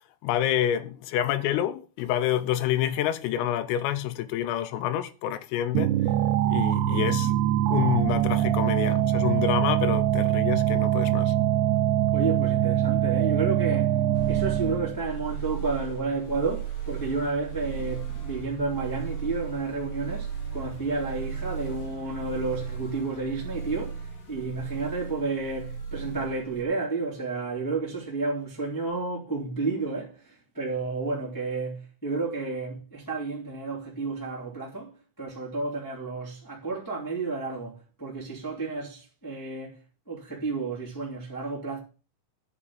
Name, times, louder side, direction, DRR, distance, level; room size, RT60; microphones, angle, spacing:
voice 1, 0.2-5.9 6.5-7.3 7.7-11.4, left 11 dB, 85° left, 3.4 m, -28 dB
sound 1, 5.7-15.0, right 12 dB, 80° right, 2.6 m, -23 dB
voice 2, 12.1-14.0 14.3-39.8 40.1-41.8, right 3 dB, 10° left, 1.3 m, -31 dB
sound 2, 14.1-26.6, right 7 dB, 45° left, 2.8 m, -36 dB
11.0 x 5.1 x 7.2 m
omnidirectional pair, 5.9 m